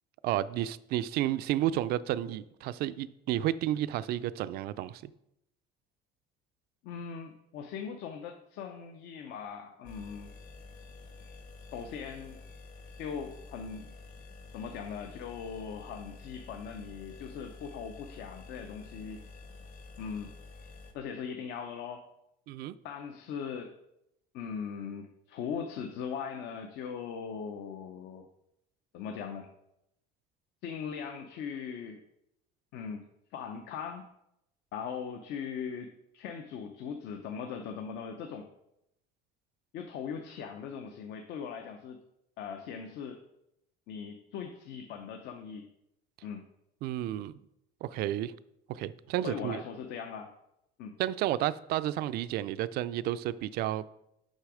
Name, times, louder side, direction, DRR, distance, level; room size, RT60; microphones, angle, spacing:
voice 1, 0.2-5.1 22.5-22.8 46.8-47.3 47.8-48.3 48.7-49.6 51.0-53.9, right 13 dB, 55° right, 0.4 m, -31 dB
voice 2, 6.8-10.3 11.7-12.4 13.0-13.9 14.5-19.2 20.0-20.3 20.9-22.0 22.8-23.8 24.3-28.3 28.9-29.5 30.6-32.0 32.7-34.1 34.7-38.5 39.7-42.0 42.4-43.2 43.9-45.7 46.2-46.5 49.2-50.3 50.8-51.0, left 6 dB, 65° left, 0.7 m, -40 dB
sound 1, 9.8-20.9, left 3 dB, 45° left, 1.2 m, -49 dB
6.5 x 6.0 x 4.9 m
cardioid pair, 150°, 19 cm